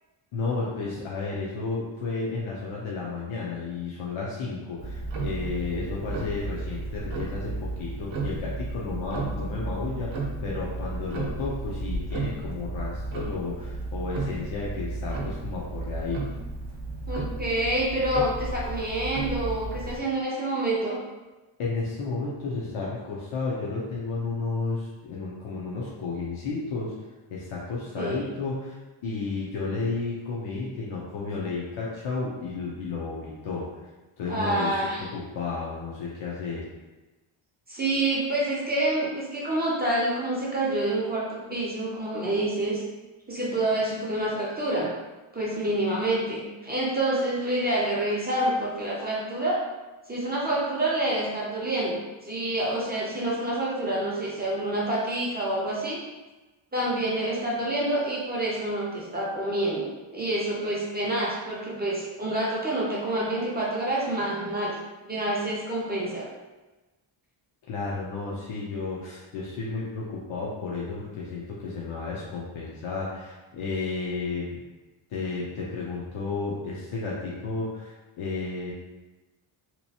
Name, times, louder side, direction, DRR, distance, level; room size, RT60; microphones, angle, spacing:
voice 1, 0.3-16.2 21.6-26.9 27.3-33.7 34.2-36.6 67.7-74.6 75.1-78.7, left 4 dB, 75° left, -5 dB, 0.7 m, -32 dB
Tick-tock, 4.8-20.0, right 2 dB, 65° right, 0.7 m, -33 dB
voice 2, 17.1-21.0 28.0-28.2 34.3-35.0 37.7-42.8 43.3-44.9 45.3-49.6 50.1-56.0 56.7-59.8 60.1-64.8 65.0-66.3, right 1 dB, 20° right, -6 dB, 0.5 m, -27 dB
3.0 x 3.0 x 2.8 m, 1.1 s
wide cardioid pair, 175°, 48 cm